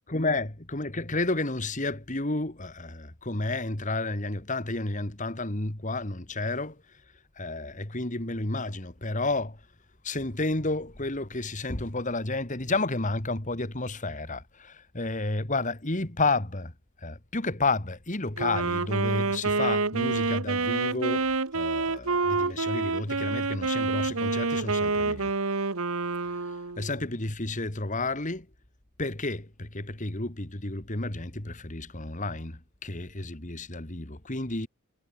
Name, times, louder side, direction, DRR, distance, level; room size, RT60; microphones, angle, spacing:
voice 1, 0.1-6.8 7.4-9.6 10.0-16.7 17.0-25.3 26.3-28.5 29.0-34.7, left 2 dB, 35° left, 2.2 m, -31 dB
Wind instrument woodwind instrument, 18.4-27.0, right 3 dB, 80° right, 1.6 m, -28 dB
head